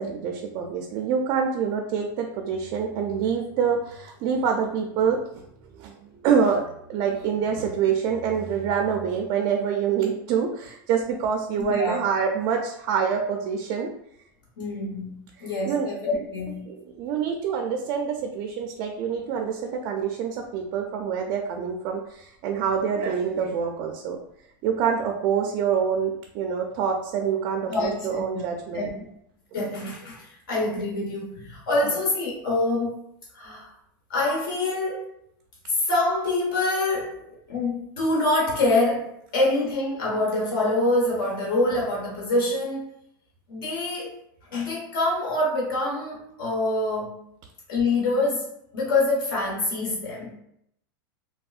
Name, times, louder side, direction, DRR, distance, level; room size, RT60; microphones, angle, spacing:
voice 1, 0.0-5.4 5.7-13.9 15.7-15.9 16.7-24.2 24.6-28.9 31.8-31.9, right 7 dB, 40° right, 2 dB, 0.3 m, -26 dB
voice 2, 11.6-12.0 14.6-16.7 27.7-28.5 28.7-29.1 29.5-33.0 33.3-33.7 34.1-35.1 35.7-42.9 43.5-44.1 44.5-47.3 47.7-50.4, left 2 dB, 75° left, -4 dB, 1.1 m, -26 dB
3.5 x 2.2 x 2.4 m, 0.74 s
supercardioid pair, 145°, 11 cm